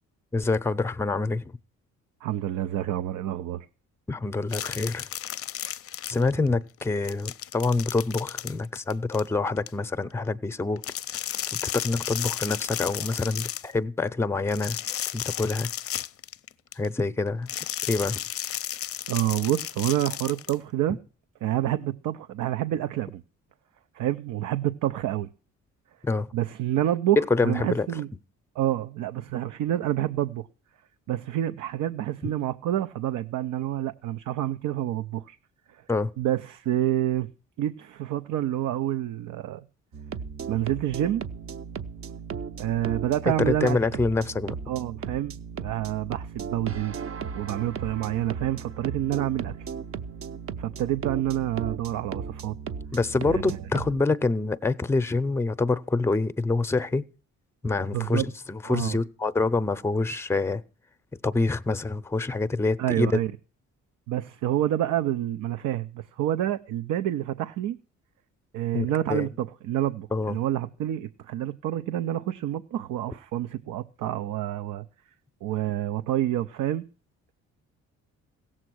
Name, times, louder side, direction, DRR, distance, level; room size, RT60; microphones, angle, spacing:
voice 1, 0.3-1.5 4.1-5.1 6.1-10.8 11.7-14.8 15.1-15.7 16.8-17.5 17.9-18.2 26.0-26.3 27.2-27.9 32.2-32.3 35.9-36.1 43.5-44.6 52.9-57.0 57.6-58.2 58.5-60.6 61.2-63.1 68.7-69.3 70.1-70.4, left 3 dB, 10° left, 0.7 m, -26 dB
voice 2, 2.2-3.7 19.1-21.0 21.4-23.2 23.9-25.3 26.3-28.1 28.5-30.5 31.1-35.4 35.7-35.8 36.2-37.3 37.6-39.6 40.5-41.2 42.6-43.8 44.7-49.5 50.6-52.6 53.2-53.6 57.9-58.3 58.6-59.0 62.8-63.3 64.1-67.8 68.5-74.9 75.4-76.9, right 12 dB, 85° right, 0.7 m, -28 dB
sound 1, 4.5-6.5 6.8-9.7 10.8-13.7 14.5-16.9 17.5-20.6, left 11 dB, 50° left, 0.5 m, -34 dB
sound 2, 39.9-54.0, right 6 dB, 45° right, 0.8 m, -36 dB
16.0 x 7.5 x 6.2 m
cardioid pair, 90°, 30 cm